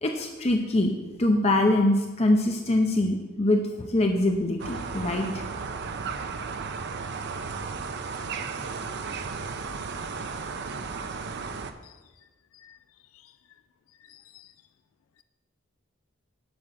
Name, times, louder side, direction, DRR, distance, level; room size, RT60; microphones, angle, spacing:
voice 1, 0.0-0.9 1.2-5.3, left 1 dB, 30° left, 3 dB, 0.7 m, -23 dB
sound 1, 4.6-11.7, right 5 dB, 55° right, 0.7 m, -34 dB
voice 2, 14.1-14.5, left 11 dB, 80° left, 12 dB, 0.4 m, -53 dB
11.5 x 5.6 x 6.3 m, 1.2 s
head